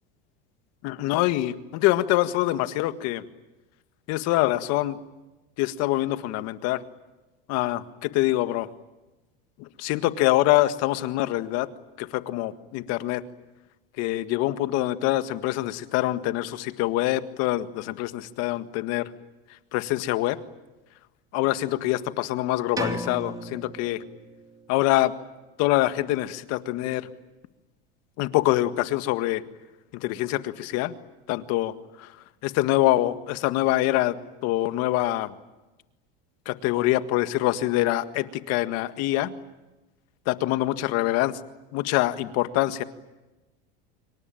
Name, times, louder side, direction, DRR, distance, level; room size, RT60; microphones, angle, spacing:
voice 1, 0.8-3.2 4.1-5.0 5.6-6.8 7.5-8.7 9.6-11.7 12.0-13.2 14.0-19.1 19.7-20.4 21.3-24.0 24.7-25.1 25.6-27.1 28.2-29.4 29.9-30.9 31.3-32.1 32.4-34.2 34.4-35.3 36.5-39.3 40.3-41.4 41.7-42.8, left 16 dB, 60° left, 10 dB, 1.8 m, -25 dB
sound 1, 22.8-24.6, right 1 dB, 10° right, 3.0 m, -34 dB
27.0 x 24.5 x 9.0 m, 1.1 s
supercardioid pair, 105°, 29 cm